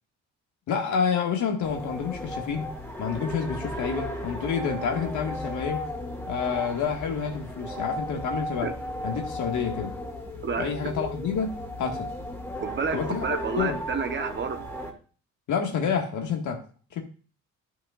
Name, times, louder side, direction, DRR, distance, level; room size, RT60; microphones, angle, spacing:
voice 1, 0.7-2.7 3.0-5.9 6.3-8.7 9.0-10.0 10.6-12.1 12.9-13.3 13.6-13.8 15.5-16.6 16.9-17.0, left 6 dB, 75° left, 1.7 m, -28 dB
sound 1, 1.6-14.9, left 1 dB, 10° left, 2.0 m, -35 dB
voice 2, 12.6-14.7, right 5 dB, 40° right, 0.9 m, -30 dB
11.5 x 6.0 x 2.4 m
cardioid pair, 90°, 30 cm